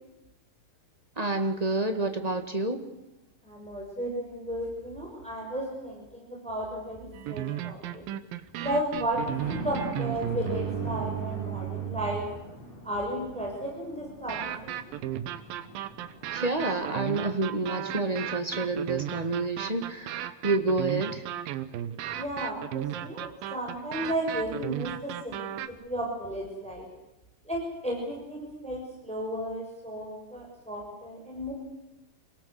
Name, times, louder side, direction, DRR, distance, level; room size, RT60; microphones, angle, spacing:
voice 1, 1.2-2.8 16.3-21.2, right 2 dB, 20° right, 6 dB, 1.1 m, -29 dB
voice 2, 3.4-8.0 8.6-12.2 12.8-14.7 22.1-25.4 25.7-26.9 27.4-31.5, equal, ahead, -1 dB, 6.3 m, -34 dB
sound 1, 7.1-12.4 14.3-25.7, right 12 dB, 85° right, 2.9 m, -35 dB
Thunder, 8.9-18.7 19.2-19.3 19.7-19.8 20.1-20.2, right 1 dB, 45° left, 7.7 m, -43 dB
27.5 x 19.0 x 8.1 m, 0.97 s
omnidirectional pair, 4.0 m